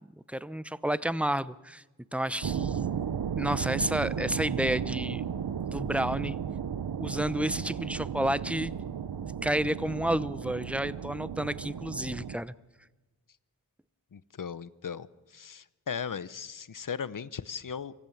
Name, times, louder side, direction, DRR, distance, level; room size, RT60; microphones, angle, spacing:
voice 1, 0.3-1.8 2.1-2.9 3.4-5.2 5.7-6.4 7.0-8.7 9.1-12.5, right 1 dB, 5° right, 17 dB, 0.7 m, -30 dB
sound 1, 2.4-12.4, right 8 dB, 70° right, 0.8 m, -34 dB
voice 2, 14.1-15.1 15.3-17.9, left 7 dB, 55° left, 17 dB, 0.8 m, -37 dB
24.5 x 16.0 x 7.2 m, 1.2 s
cardioid pair, 45°, 38 cm